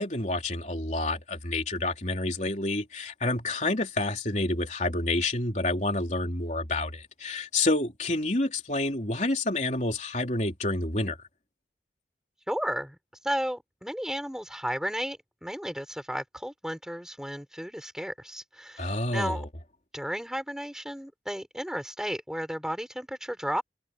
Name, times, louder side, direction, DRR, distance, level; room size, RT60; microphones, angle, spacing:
voice 1, 0.0-11.2 18.8-19.5, left 2 dB, 40° left, 3.7 m, -28 dB
voice 2, 12.5-13.0 13.2-19.4 19.9-23.6, equal, 5° right, 5.0 m, -33 dB
head